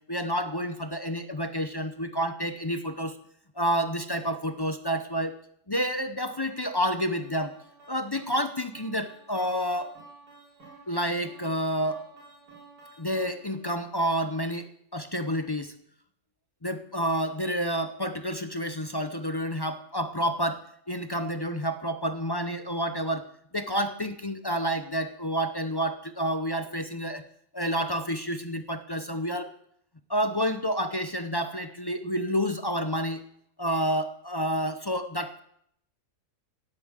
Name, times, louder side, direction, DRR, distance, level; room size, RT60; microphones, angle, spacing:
voice 1, 0.1-3.1 3.6-5.3 5.7-7.5 7.9-9.9 10.9-12.0 13.0-14.7 14.9-15.7 16.6-23.3 23.5-27.2 27.5-29.5 30.1-33.2 33.6-35.4, equal, 30° left, 8 dB, 0.4 m, -29 dB
sound 1, 6.3-13.7, right 3 dB, 80° right, 5.0 m, -53 dB
17.0 x 8.4 x 7.5 m, 0.71 s
omnidirectional pair, 1.6 m